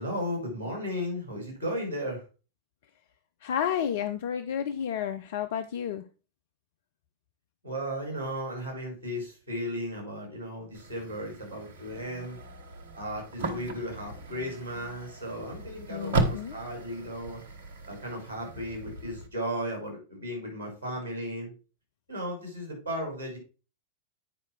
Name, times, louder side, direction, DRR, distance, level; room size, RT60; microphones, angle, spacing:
voice 1, 0.0-2.2 7.6-12.4 12.9-17.5 17.8-21.5 22.1-23.4, equal, 90° left, 0 dB, 5.4 m, -35 dB
voice 2, 3.4-6.0 15.9-16.6, left 9 dB, 55° left, 9 dB, 0.5 m, -31 dB
sound 1, 10.7-19.3, right 2 dB, 60° right, 1.2 m, -36 dB
9.0 x 5.6 x 4.5 m, 0.33 s
figure-of-eight pair, 90°, 0 cm